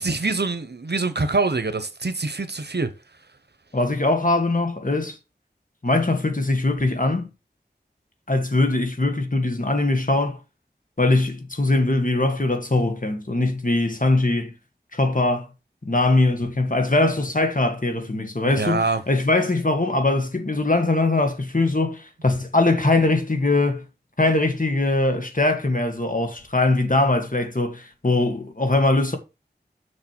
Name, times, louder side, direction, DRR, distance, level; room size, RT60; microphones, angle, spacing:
voice 1, 0.0-2.9 18.5-19.0, right 3 dB, 75° right, 1.0 m, -24 dB
voice 2, 3.7-5.2 5.8-7.3 8.3-10.4 11.0-14.5 14.9-15.5 15.8-23.9 24.2-29.2, left 2 dB, 50° left, 1.8 m, -21 dB
6.7 x 6.6 x 4.5 m
wide cardioid pair, 45°, 17 cm